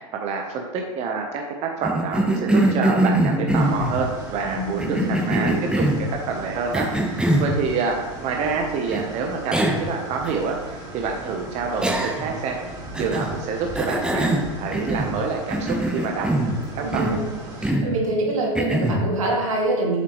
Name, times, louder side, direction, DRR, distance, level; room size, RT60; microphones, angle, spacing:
voice 1, 0.2-16.3 16.7-17.2, right 5 dB, 40° right, 2 dB, 0.9 m, -27 dB
Cough, 1.8-4.0 4.8-6.1 6.7-7.5 8.9-9.0 9.5-9.9 10.2-10.3 11.8-12.4 12.9-13.3 13.7-15.2 15.5-16.6 16.9-17.2 17.6-17.9 18.5-19.0, right 1 dB, 5° right, 1.1 m, -22 dB
sound 1, 3.5-17.7, right 1 dB, 20° right, 2.1 m, -38 dB
voice 2, 4.4-5.0 5.2-5.5 16.8-17.2 17.6-20.0, right 2 dB, 85° right, -2 dB, 2.2 m, -25 dB
7.6 x 5.9 x 3.1 m, 1.3 s
hypercardioid pair, 105°, 17 cm